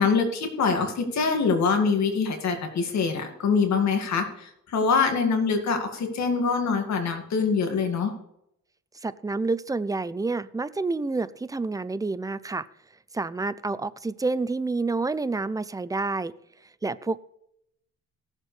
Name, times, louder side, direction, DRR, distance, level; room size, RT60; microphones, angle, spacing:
voice 1, 0.0-8.1, left 5 dB, 65° left, 4 dB, 2.2 m, -24 dB
voice 2, 9.0-12.7 13.1-16.3 16.8-17.2, right 3 dB, 10° right, 16 dB, 0.4 m, -28 dB
17.5 x 7.4 x 3.3 m, 0.79 s
cardioid pair, 90°, 30 cm